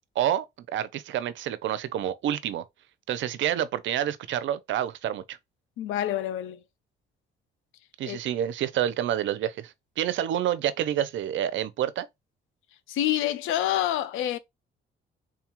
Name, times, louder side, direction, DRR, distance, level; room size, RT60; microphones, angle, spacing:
voice 1, 0.2-2.6 3.1-5.4 8.0-12.1, right 11 dB, 70° right, 0.5 m, -28 dB
voice 2, 5.8-6.6 8.1-8.2 12.9-14.4, left 12 dB, 85° left, 0.4 m, -27 dB
3.8 x 2.3 x 2.9 m
cardioid pair, 90°, 20 cm